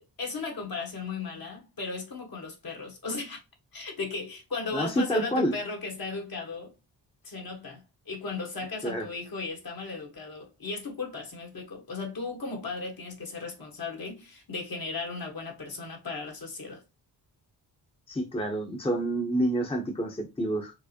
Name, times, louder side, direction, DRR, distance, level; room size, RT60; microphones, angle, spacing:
voice 1, 0.2-3.4 3.7-6.7 7.2-16.8, left 4 dB, 55° left, 1.5 m, -36 dB
voice 2, 4.7-5.5 8.8-9.0 18.1-20.7, right 1 dB, 15° left, 0.8 m, -28 dB
4.7 x 2.1 x 2.8 m
cardioid pair, 50°, 44 cm